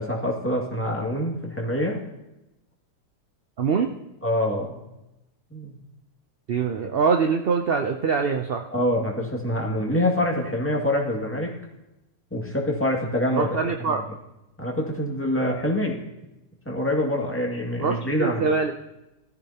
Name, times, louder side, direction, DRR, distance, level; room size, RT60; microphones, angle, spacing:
voice 1, 0.0-2.0 4.2-4.8 5.5-5.8 8.7-11.5 12.3-13.6 13.9-14.0 14.6-16.0 16.7-18.4, left 1 dB, 10° left, -2 dB, 2.0 m, -25 dB
voice 2, 3.6-3.9 6.5-8.6 13.3-14.0 17.8-18.7, right 5 dB, 60° right, 5 dB, 0.6 m, -23 dB
17.5 x 13.5 x 2.9 m, 0.94 s
omnidirectional pair, 1.8 m